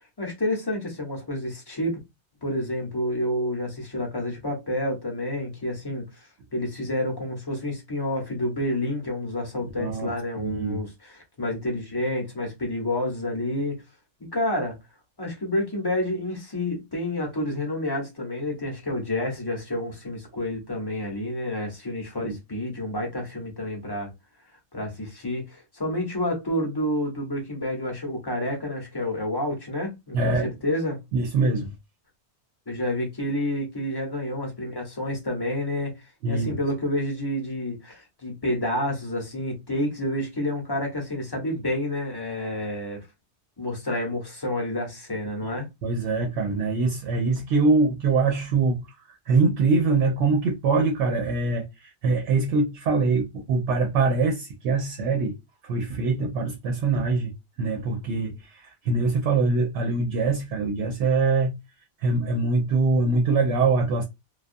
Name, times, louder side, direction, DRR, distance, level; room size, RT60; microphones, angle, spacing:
voice 1, 0.2-2.0 2.4-6.1 6.5-13.8 14.3-14.8 15.2-24.1 24.7-31.0 32.7-43.1 43.6-45.7, left 1 dB, 25° left, 0.8 m, -29 dB
voice 2, 9.8-10.1 10.4-10.8 22.2-22.4 30.1-30.5 31.1-31.7 36.2-36.5 45.4-45.5 45.8-55.3 55.6-57.3 57.6-61.6 62.0-64.0, right 3 dB, 80° right, 0.9 m, -23 dB
2.3 x 2.3 x 2.5 m
omnidirectional pair, 1.2 m